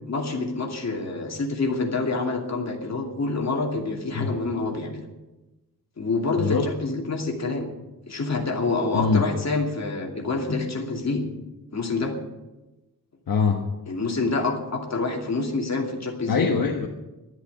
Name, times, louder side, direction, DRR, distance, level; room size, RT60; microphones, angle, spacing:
voice 1, 0.1-5.0 6.0-7.7 8.1-11.2 11.7-12.1 13.9-16.5, left 3 dB, 45° left, 1 dB, 2.6 m, -27 dB
voice 2, 13.3-13.6 16.3-16.9, left 5 dB, 70° left, 1 dB, 1.4 m, -22 dB
11.5 x 10.5 x 9.8 m, 1.0 s
wide cardioid pair, 165°, 36 cm